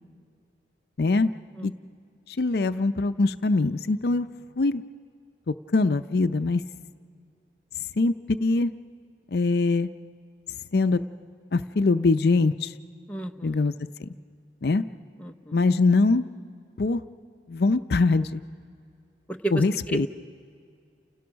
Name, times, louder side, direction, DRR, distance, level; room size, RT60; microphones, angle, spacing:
voice 1, 1.0-1.3 1.6-1.7 2.3-4.3 4.6-4.8 5.5-6.6 8.0-8.7 9.3-9.9 10.7-11.0 11.5-12.7 13.4-13.7 14.0-14.1 14.6-14.8 15.5-16.2 16.8-17.0 17.5-18.4 19.5-20.1, left 3 dB, 60° left, 11 dB, 0.5 m, -23 dB
voice 2, 13.1-13.6 15.2-15.6 19.4-20.1, right 3 dB, 10° left, 3 dB, 0.7 m, -32 dB
29.5 x 16.5 x 6.2 m, 2.3 s
head